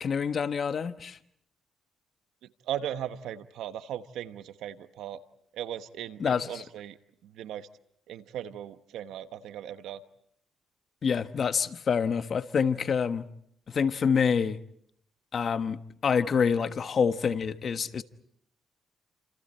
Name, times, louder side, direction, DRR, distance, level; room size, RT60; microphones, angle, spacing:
voice 1, 0.0-1.2 6.2-6.6 11.0-13.2 13.7-14.6 15.3-18.0, left 6 dB, 50° left, 1.3 m, -27 dB
voice 2, 2.6-5.2 5.5-7.0 7.2-7.7 8.1-10.0, right 10 dB, 85° right, 1.2 m, -37 dB
30.0 x 27.5 x 4.4 m
cardioid pair, 90°, 0 cm